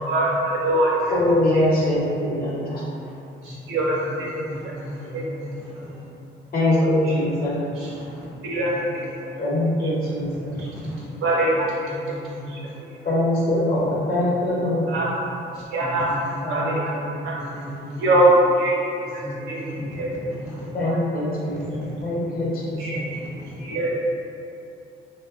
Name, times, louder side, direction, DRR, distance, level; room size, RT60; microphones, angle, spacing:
voice 1, 0.0-0.9 3.7-4.7 5.1-5.4 8.4-9.0 10.6-10.7 11.2-11.6 12.5-12.6 14.9-15.1 15.7-16.1 16.5-16.9 17.2-17.3 18.0-20.2 20.8-21.0 22.8-23.2 23.6-23.9, right 1 dB, 75° right, -5 dB, 0.6 m, -23 dB
voice 2, 1.1-2.9 6.5-7.6 9.4-10.5 13.0-14.9 16.4-17.3 20.7-23.0, left 1 dB, 50° left, -6 dB, 0.7 m, -23 dB
voice 3, 3.9-6.0 7.6-8.3 8.7-9.2 9.9-11.1 11.9-12.8 13.6-13.7 14.6-14.7 14.9-15.0 15.5-16.6 16.9-17.0 17.3-18.2 19.2-20.8 21.5-22.1 22.7-23.7, equal, 5° right, -8 dB, 0.3 m, -36 dB
2.6 x 2.2 x 2.4 m, 2.6 s
cardioid pair, 90°, 20 cm